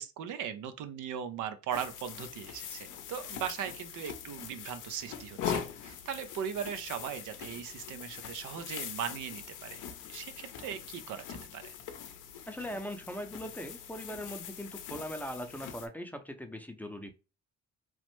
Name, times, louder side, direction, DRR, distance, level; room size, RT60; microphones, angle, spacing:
voice 1, 0.0-9.8 10.1-11.7, right 8 dB, 80° right, 0.5 m, -39 dB
sound 1, 1.7-15.9, left 8 dB, 85° left, 0.6 m, -42 dB
voice 2, 12.5-17.1, equal, 5° left, 0.5 m, -40 dB
3.2 x 2.0 x 3.0 m
cardioid pair, 90°, 30 cm